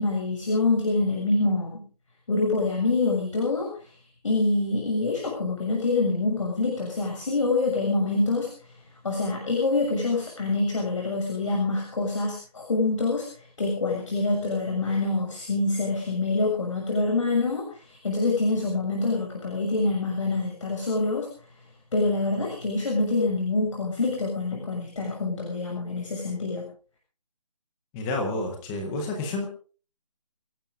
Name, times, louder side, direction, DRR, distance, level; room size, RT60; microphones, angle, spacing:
voice 1, 0.0-1.8 2.3-3.7 4.2-8.5 9.0-13.3 13.6-21.3 21.9-26.6, left 3 dB, 50° left, -1 dB, 6.7 m, -26 dB
voice 2, 27.9-29.4, left 2 dB, 5° left, 3 dB, 0.7 m, -29 dB
28.0 x 11.5 x 3.7 m, 0.40 s
figure-of-eight pair, 170°, 21 cm